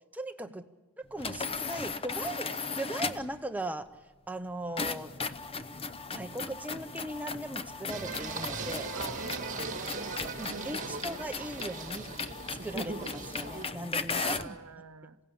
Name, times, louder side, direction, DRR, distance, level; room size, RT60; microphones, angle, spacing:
voice 1, 0.1-0.6 1.1-3.9 4.3-5.1 6.1-8.9 10.4-12.1 12.6-14.6, right 1 dB, 5° right, 7 dB, 0.8 m, -38 dB
sound 1, 1.2-3.4 4.8-14.6, left 4 dB, 25° left, 0.7 m, -37 dB
Singing, 7.9-13.7, right 4 dB, 35° right, 1.6 m, -39 dB
voice 2, 8.9-9.8 10.1-11.0 14.2-15.2, right 5 dB, 75° right, 13 dB, 1.0 m, -45 dB
27.5 x 17.0 x 8.7 m, 1.3 s
head